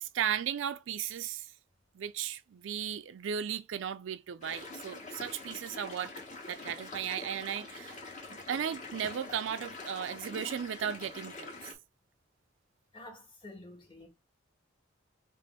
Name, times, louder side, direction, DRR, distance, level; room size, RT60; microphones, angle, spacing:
voice 1, 0.0-1.5 1.9-6.1 6.5-8.0 8.3-11.7, right 8 dB, 70° right, 0.4 m, -36 dB
sound 1, 4.4-11.7, left 3 dB, 40° left, 1.3 m, -45 dB
voice 2, 12.9-14.1, left 2 dB, 25° left, 1.3 m, -49 dB
3.4 x 3.0 x 4.3 m
head